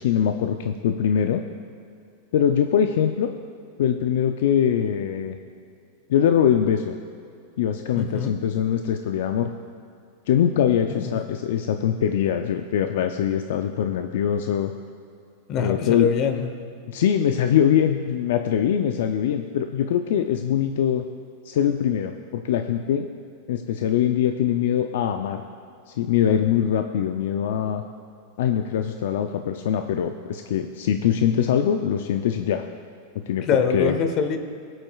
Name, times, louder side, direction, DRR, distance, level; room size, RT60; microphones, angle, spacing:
voice 1, 0.0-1.4 2.3-3.3 3.8-5.4 6.1-7.0 7.6-9.5 10.3-14.7 15.6-16.1 16.9-21.0 21.5-23.1 23.5-25.4 26.0-27.8 28.4-32.6 33.3-34.0, left 9 dB, 70° left, 6 dB, 0.4 m, -22 dB
voice 2, 7.9-8.3 10.9-11.2 15.5-16.5 33.4-34.4, left 6 dB, 40° left, 7 dB, 1.0 m, -24 dB
20.5 x 7.7 x 2.4 m, 2.5 s
hypercardioid pair, 125°, 0 cm